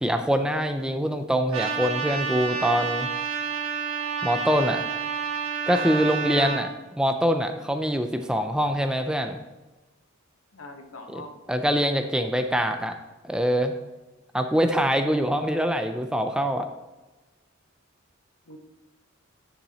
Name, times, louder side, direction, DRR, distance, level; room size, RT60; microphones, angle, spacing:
voice 1, 0.0-3.1 4.2-4.8 5.7-6.7 7.0-9.4 11.1-11.2 11.5-13.0 13.2-13.7 14.3-16.7, equal, 5° right, 7 dB, 0.4 m, -24 dB
Trumpet, 1.5-6.6, right 5 dB, 75° right, 1.6 m, -29 dB
voice 2, 6.1-6.8 10.5-11.3 14.9-15.2 18.5-18.6, left 2 dB, 80° left, 4 dB, 1.1 m, -42 dB
10.0 x 7.1 x 2.8 m, 1.1 s
head